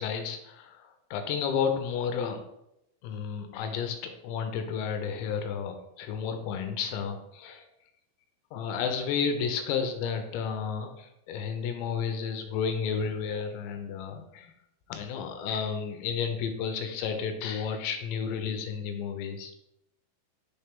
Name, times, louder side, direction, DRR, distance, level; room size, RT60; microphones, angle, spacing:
voice 1, 0.0-2.4 3.0-7.6 8.5-14.5 14.9-19.5, left 6 dB, 85° left, 6 dB, 2.7 m, -32 dB
6.4 x 4.3 x 3.5 m, 0.82 s
omnidirectional pair, 5.4 m